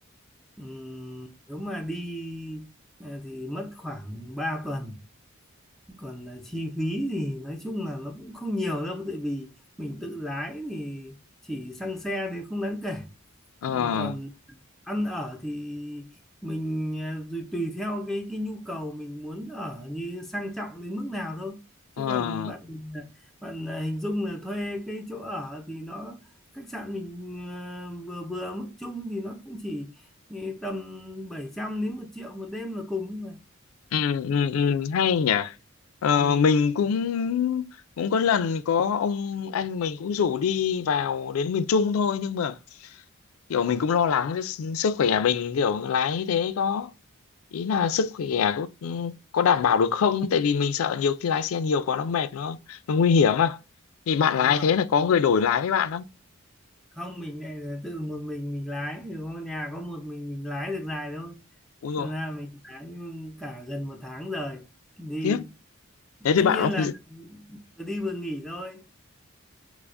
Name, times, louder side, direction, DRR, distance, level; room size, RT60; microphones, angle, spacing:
voice 1, 0.6-2.7 3.0-5.0 5.9-9.5 9.8-11.2 11.4-13.1 13.7-14.3 14.9-16.2 16.4-21.6 22.0-23.1 23.4-26.2 26.5-29.9 30.3-33.4 54.3-54.7 56.9-61.4 62.0-64.7 65.0-65.5 66.2-68.8, left 1 dB, ahead, 0.3 m, -34 dB
voice 2, 13.6-14.1 22.0-22.5 33.9-35.5 36.0-37.7 38.0-42.6 43.5-46.9 47.5-53.6 54.1-56.1 61.8-62.1 65.2-65.4 66.2-66.9, left 6 dB, 80° left, 0.4 m, -24 dB
4.6 x 2.0 x 2.4 m
head